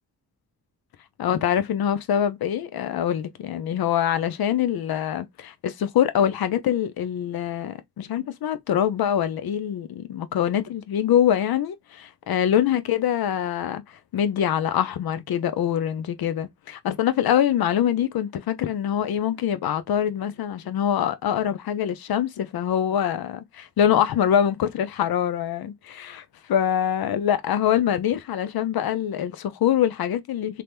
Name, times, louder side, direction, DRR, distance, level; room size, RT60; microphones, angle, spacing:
voice 1, 1.2-13.8 14.1-26.2 26.5-30.6, left 10 dB, 70° left, 0.5 m, -24 dB
2.8 x 2.1 x 3.2 m
wide cardioid pair, 100°, 38 cm